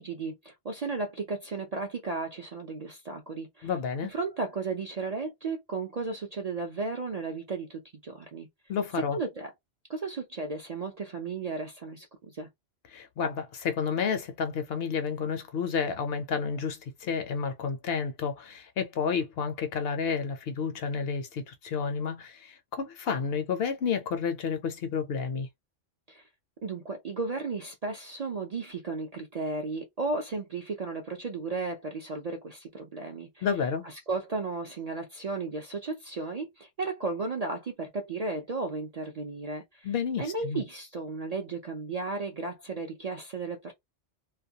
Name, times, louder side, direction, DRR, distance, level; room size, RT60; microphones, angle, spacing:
voice 1, 0.0-3.7 4.0-8.5 9.0-9.5 9.9-12.5 26.1-26.2 26.6-33.5 33.8-39.9 40.2-43.7, right 3 dB, 50° right, 0.5 m, -34 dB
voice 2, 3.6-4.1 8.7-9.2 12.9-25.5 33.4-33.9 39.8-40.6, left 6 dB, 65° left, 0.7 m, -30 dB
2.3 x 2.2 x 2.7 m
omnidirectional pair, 1.2 m